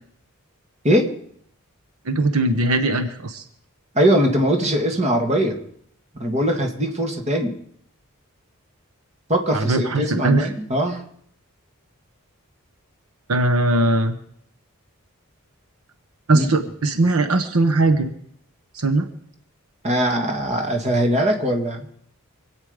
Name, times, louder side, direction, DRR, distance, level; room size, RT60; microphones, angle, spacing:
voice 1, 2.0-3.4 9.5-10.5 13.3-14.2 16.3-18.1 18.7-19.0, right 2 dB, 80° right, 7 dB, 1.2 m, -20 dB
voice 2, 3.9-5.6 6.1-7.5 9.3-11.0 16.3-16.5 19.8-21.9, equal, 30° right, 4 dB, 2.0 m, -21 dB
26.0 x 8.8 x 5.2 m, 0.65 s
head